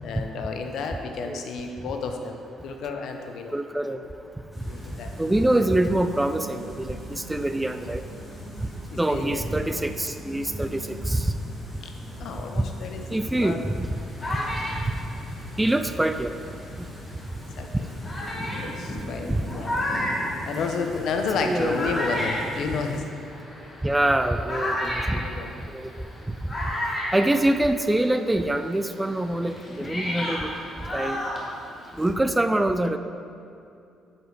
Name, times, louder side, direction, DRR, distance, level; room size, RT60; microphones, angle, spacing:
voice 1, 0.0-3.5 4.7-5.1 8.9-9.4 12.1-13.6 17.6-17.7 18.5-19.8 20.4-23.0 25.1-25.5, left 4 dB, 70° left, 4 dB, 0.8 m, -31 dB
voice 2, 3.5-4.0 5.2-8.0 8.6-8.7 9.0-11.4 12.6-12.7 13.1-13.9 15.6-16.3 19.3-19.4 21.4-21.8 23.8-25.3 25.6-26.3 27.1-30.5 30.9-31.3 32.0-33.0, right 1 dB, 10° right, 9 dB, 0.3 m, -25 dB
sound 1, 4.5-23.0, left 1 dB, 5° left, 1.9 m, -41 dB
sound 2, 5.2-11.1, right 6 dB, 70° right, 1.2 m, -47 dB
sound 3, 13.7-16.8 17.4-17.5 18.0-28.1 28.3-32.1, left 1 dB, 25° left, 1.7 m, -32 dB
8.5 x 5.1 x 5.0 m, 2.6 s
cardioid pair, 110°, 0 cm